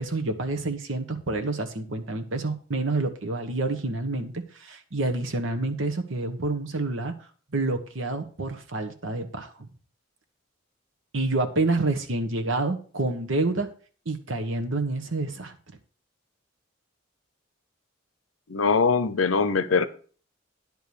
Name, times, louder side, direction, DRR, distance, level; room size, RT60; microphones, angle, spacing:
voice 1, 0.0-7.1 7.5-9.7 11.1-13.7 14.0-15.6, right 2 dB, 75° right, 1.3 m, -28 dB
voice 2, 18.5-19.9, left 5 dB, 90° left, 0.8 m, -22 dB
10.0 x 4.8 x 6.9 m
head